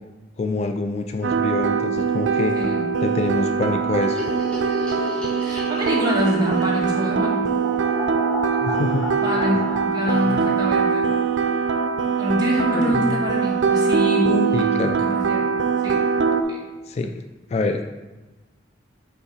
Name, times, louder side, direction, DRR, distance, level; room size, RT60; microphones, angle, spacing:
voice 1, 0.4-2.5 3.0-4.2 8.6-9.1 10.0-10.4 12.7-13.2 14.5-14.9 16.9-17.1 17.5-17.8, left 3 dB, 35° left, 7 dB, 0.3 m, -26 dB
sound 1, 1.2-16.4, right 6 dB, 85° right, 0.5 m, -22 dB
voice 2, 2.5-2.9 5.4-7.4 9.2-11.1 12.2-15.5 15.8-16.0 16.5-16.6, left 1 dB, 20° right, -5 dB, 1.8 m, -25 dB
sound 2, 4.0-12.2 12.5-12.6 12.8-12.9 13.2-13.3 13.5-14.1, left 2 dB, 5° left, 1.5 m, -34 dB
5.5 x 5.4 x 4.9 m, 1.2 s
head